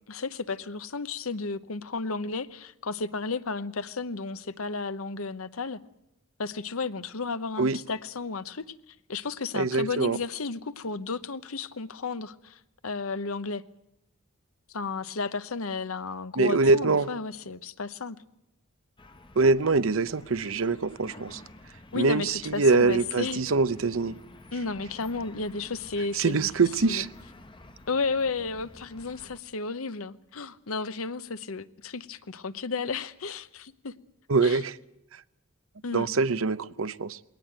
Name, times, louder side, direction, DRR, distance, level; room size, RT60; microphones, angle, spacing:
voice 1, 0.1-5.8 6.4-13.6 14.7-18.2 21.9-23.4 24.5-26.5 26.8-27.0 27.9-33.9 34.4-34.6 35.8-36.1, left 4 dB, 85° left, 13 dB, 0.9 m, -33 dB
voice 2, 9.5-10.2 16.4-17.1 19.4-21.4 21.9-24.2 26.1-27.1 34.3-34.7 35.9-37.2, right 3 dB, 70° right, 15 dB, 0.7 m, -24 dB
sound 1, 19.0-29.4, left 2 dB, 25° left, 1.1 m, -50 dB
21.0 x 18.5 x 9.1 m, 0.85 s
head